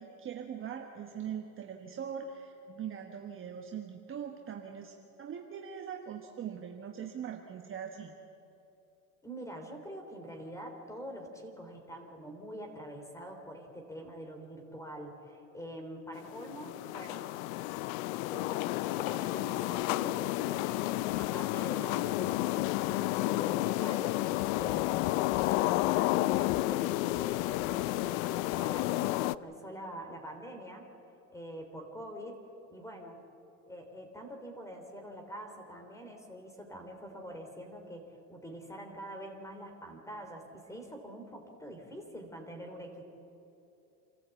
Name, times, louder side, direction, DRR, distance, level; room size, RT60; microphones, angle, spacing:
voice 1, 0.0-8.2, right 8 dB, 25° right, 3 dB, 1.3 m, -41 dB
voice 2, 9.2-17.3 18.2-20.9 21.1-30.9 31.3-32.4 32.7-33.2 33.7-43.0, equal, 5° left, 5 dB, 3.3 m, -45 dB
sound 1, 16.1-29.3, left 18 dB, 60° left, 0.6 m, -31 dB
27.0 x 14.0 x 8.3 m, 2.8 s
supercardioid pair, 130°, 47 cm